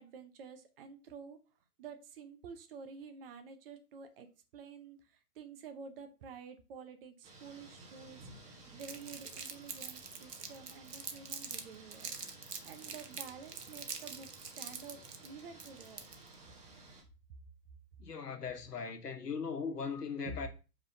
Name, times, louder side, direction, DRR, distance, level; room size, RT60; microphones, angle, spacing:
voice 1, 0.0-1.4 1.8-4.3 4.5-16.1 20.2-20.3, right 5 dB, 35° right, 0.9 m, -50 dB
sound 1, 7.2-17.0, right 2 dB, 15° right, 1.1 m, -55 dB
Crumpling crinkling, 8.8-11.6 11.9-16.3, right 6 dB, 75° right, 1.2 m, -44 dB
voice 2, 18.0-20.5, left 5 dB, 75° left, 1.4 m, -39 dB
5.4 x 3.7 x 5.2 m
figure-of-eight pair, 120°, 48 cm